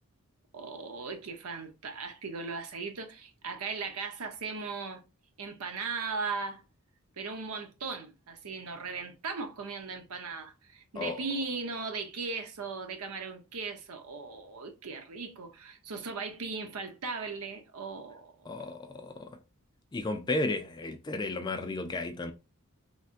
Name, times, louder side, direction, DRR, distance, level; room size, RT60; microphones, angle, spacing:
voice 1, 0.5-5.0 5.4-6.6 7.2-18.5, right 4 dB, 85° right, 0.7 m, -38 dB
voice 2, 18.5-19.4 19.9-22.3, left 2 dB, 20° left, 0.3 m, -33 dB
3.2 x 2.6 x 2.4 m
head